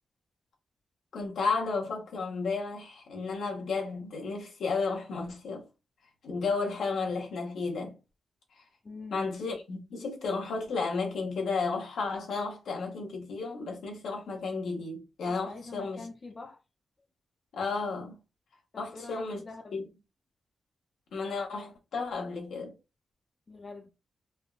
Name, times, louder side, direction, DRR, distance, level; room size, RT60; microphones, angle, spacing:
voice 1, 1.1-5.6 6.2-7.9 9.1-16.1 17.5-18.2 18.8-19.4 19.7-19.8 21.1-22.7, left 4 dB, 85° left, 0.8 m, -33 dB
voice 2, 8.8-9.3 15.3-16.6 18.7-19.8 23.5-23.9, left 3 dB, 40° left, 0.5 m, -45 dB
3.3 x 2.1 x 2.3 m
cardioid pair, 75°, 0 cm